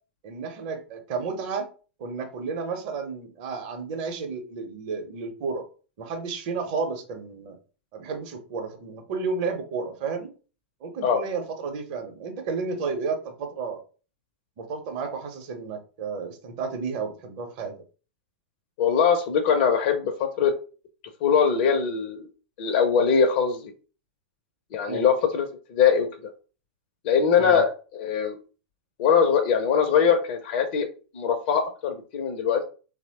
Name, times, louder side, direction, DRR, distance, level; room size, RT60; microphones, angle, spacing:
voice 1, 0.2-1.7 2.0-5.6 6.0-7.6 7.9-10.3 10.8-13.8 14.6-17.8 24.9-25.1 27.4-27.6, right 4 dB, 45° right, 6 dB, 0.7 m, -32 dB
voice 2, 18.8-20.5 21.2-22.3 22.6-23.7 24.7-26.1 27.0-28.4 29.0-30.9 31.1-32.6, left 7 dB, 50° left, 4 dB, 0.5 m, -22 dB
2.9 x 2.0 x 2.7 m, 0.36 s
figure-of-eight pair, 95°, 6 cm